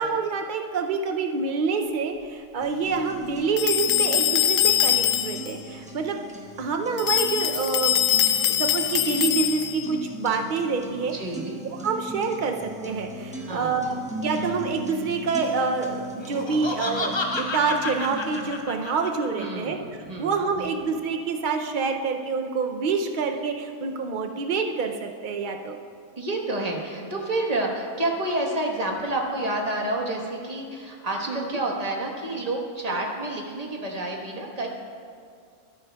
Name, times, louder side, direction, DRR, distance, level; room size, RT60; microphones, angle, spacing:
voice 1, 0.0-6.2 6.6-8.0 8.4-11.1 11.8-25.8 31.3-31.6 32.9-33.0, right 4 dB, 80° right, 4 dB, 0.4 m, -27 dB
sound 1, 2.6-18.6, right 1 dB, 5° right, 1.0 m, -38 dB
sound 2, 3.6-5.5 7.0-9.9, left 11 dB, 70° left, 1.0 m, -23 dB
voice 2, 11.1-11.6 13.4-14.0 19.4-20.7 26.2-34.7, right 2 dB, 30° right, 0 dB, 1.2 m, -29 dB
Laughter, 16.2-19.5, left 2 dB, 40° left, 0.4 m, -30 dB
13.5 x 13.0 x 2.3 m, 2.2 s
omnidirectional pair, 1.5 m